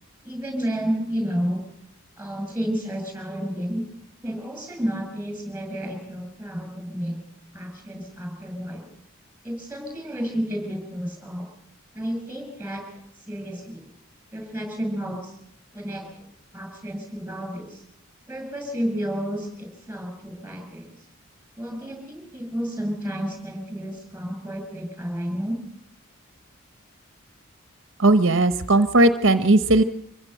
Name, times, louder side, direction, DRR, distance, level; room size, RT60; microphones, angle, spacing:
voice 1, 0.2-1.6 2.2-3.8 4.2-7.2 7.5-8.8 9.4-11.5 11.9-12.9 13.2-13.9 14.3-15.4 15.7-16.3 16.5-17.8 18.3-20.9 21.6-25.6, equal, 10° right, 4 dB, 6.4 m, -31 dB
voice 2, 28.0-29.8, right 2 dB, 65° right, 10 dB, 0.9 m, -17 dB
25.5 x 15.5 x 7.8 m, 0.74 s
head